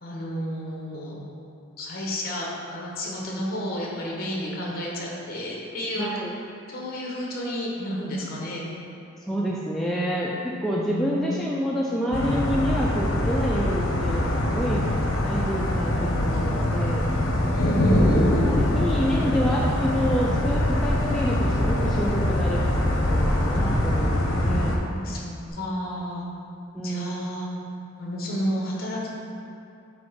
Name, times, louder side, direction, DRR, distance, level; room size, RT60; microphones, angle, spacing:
voice 1, 0.0-1.2 1.8-6.2 6.7-8.7 10.7-11.4 17.5-18.5 24.3-26.2 26.8-27.5 28.0-29.1, equal, 45° left, -3 dB, 1.2 m, -31 dB
voice 2, 6.0-6.3 9.3-10.3 10.6-14.8 15.2-17.1 17.9-22.6 23.1-24.8 26.7-27.1, equal, ahead, -5 dB, 0.3 m, -28 dB
sound 1, 12.1-24.8, left 1 dB, 75° left, 0.8 m, -23 dB
sound 2, 13.3-24.3 25.5-25.6, left 2 dB, 50° right, 1.0 m, -39 dB
7.7 x 3.0 x 5.1 m, 2.6 s
head